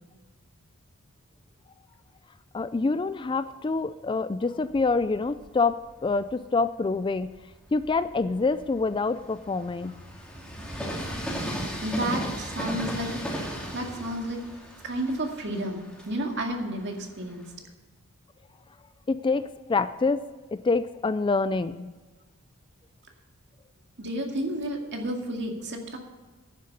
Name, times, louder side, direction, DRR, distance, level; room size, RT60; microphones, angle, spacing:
voice 1, 2.5-7.3 7.7-9.9 19.1-20.2 20.5-21.9, left 3 dB, 20° left, 13 dB, 0.3 m, -26 dB
Train, 4.6-6.3 6.9-17.5, equal, 5° left, 2.3 m, -37 dB
voice 2, 11.8-13.2 13.7-14.4 14.8-17.5 24.0-26.0, right 1 dB, 50° right, 2 dB, 2.1 m, -31 dB
10.5 x 9.5 x 6.8 m, 1.3 s
head